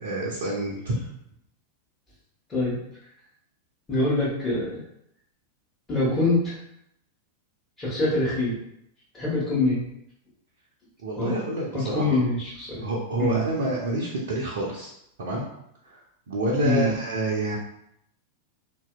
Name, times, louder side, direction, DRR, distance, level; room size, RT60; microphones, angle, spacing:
voice 1, 0.0-0.9 11.0-12.2 12.8-14.9 15.2-15.4 15.9-16.0 16.3-17.6, right 1 dB, 60° right, -5 dB, 0.5 m, -28 dB
voice 2, 3.9-4.8 5.9-6.5 7.8-8.6 9.1-9.8 11.2-11.3 11.7-12.8 13.2-13.4 16.6-16.9, left 2 dB, 20° left, -9 dB, 1.0 m, -24 dB
2.8 x 2.6 x 2.3 m, 0.77 s
figure-of-eight pair, 90°, 0 cm